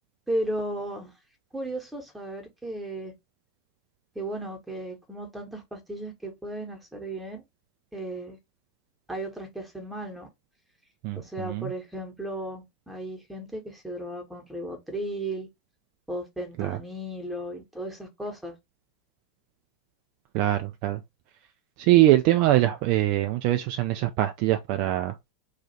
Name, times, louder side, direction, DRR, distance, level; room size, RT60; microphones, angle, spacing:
voice 1, 0.3-1.1 1.5-3.1 4.1-7.4 7.9-8.4 9.1-10.3 11.1-15.5 16.1-18.5, right 1 dB, 5° right, 1.1 m, -35 dB
voice 2, 11.0-11.7 16.6-16.8 20.3-21.0 21.8-25.1, right 15 dB, 45° right, 0.3 m, -23 dB
2.8 x 2.4 x 4.1 m
figure-of-eight pair, 90°, 0 cm